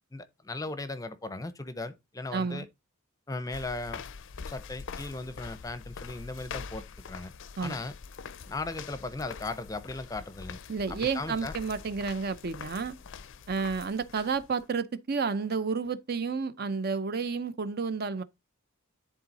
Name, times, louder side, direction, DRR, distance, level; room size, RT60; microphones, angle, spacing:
voice 1, 0.1-2.7 3.3-4.0 4.5-7.3 7.6-7.9 8.5-10.6 10.9-11.5, left 2 dB, 15° left, 0.6 m, -37 dB
voice 2, 2.3-2.7 7.6-7.8 10.7-13.0 13.5-18.2, right 5 dB, 50° right, 0.6 m, -31 dB
sound 1, 3.5-14.7, left 5 dB, 60° left, 0.5 m, -44 dB
10.5 x 3.8 x 4.1 m
head